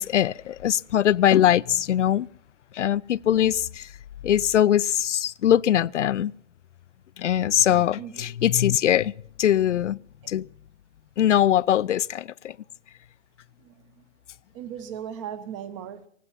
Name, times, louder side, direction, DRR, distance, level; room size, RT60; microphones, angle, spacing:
voice 1, 0.0-2.3 2.8-3.9 4.2-6.3 7.2-9.1 9.4-10.0 10.3-10.4 11.2-12.5, left 11 dB, 80° left, 0.5 m, -21 dB
voice 2, 8.0-8.3 13.6-14.0 14.5-16.1, right 9 dB, 25° right, 1.0 m, -38 dB
18.5 x 16.0 x 4.2 m
hypercardioid pair, 145°, 36 cm